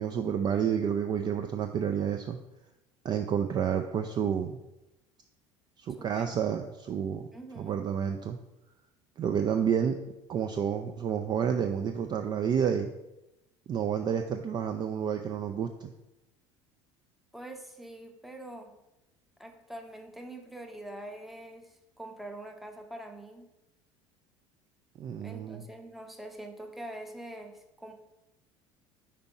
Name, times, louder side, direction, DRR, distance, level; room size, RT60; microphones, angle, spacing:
voice 1, 0.0-2.4 3.0-4.6 5.8-7.3 7.6-8.4 9.2-10.0 10.3-12.9 13.7-15.9 25.0-25.7, right 8 dB, 25° right, 6 dB, 0.4 m, -30 dB
voice 2, 6.0-6.3 7.3-7.8 17.3-18.8 19.4-23.5 25.2-27.9, right 1 dB, ahead, 4 dB, 0.7 m, -44 dB
5.2 x 4.3 x 4.5 m, 0.94 s
figure-of-eight pair, 65°, 16 cm